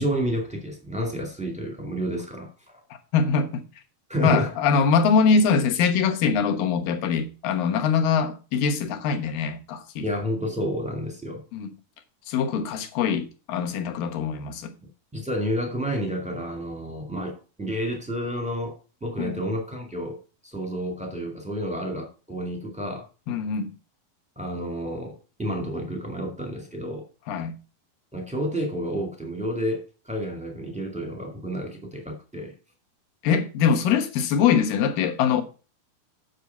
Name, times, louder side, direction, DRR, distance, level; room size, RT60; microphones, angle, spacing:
voice 1, 0.0-2.5 4.1-4.5 10.0-11.4 15.1-20.2 20.4-23.1 24.3-27.0 28.1-32.5, equal, 5° right, 0.9 m, -30 dB
voice 2, 3.1-3.6 4.2-10.1 11.5-11.7 12.3-14.7 19.2-19.4 23.3-23.7 27.3-27.6 33.2-35.4, left 6 dB, 70° left, 2.8 m, -23 dB
8.3 x 6.9 x 5.6 m
omnidirectional pair, 4.3 m